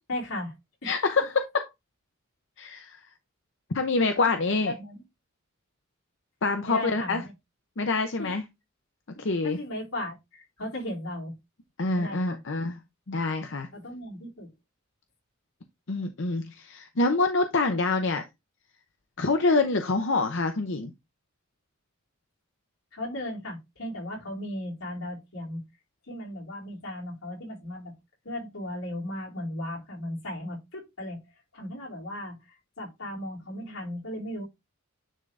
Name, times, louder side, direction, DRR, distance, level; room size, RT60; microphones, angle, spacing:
voice 1, 0.1-0.5 4.7-4.9 6.7-7.3 8.2-8.3 9.2-11.3 11.9-12.4 13.7-14.5 22.9-25.6 26.1-27.9 28.2-31.2 31.5-34.4, left 1 dB, 85° left, 4.1 m, -36 dB
voice 2, 0.8-1.7 2.6-3.0 3.7-4.7 6.4-7.2 7.8-8.4 9.2-9.6 11.8-12.8 13.1-13.7 15.9-18.2 19.2-20.9, left 3 dB, 60° left, 0.8 m, -26 dB
10.0 x 3.9 x 3.3 m
head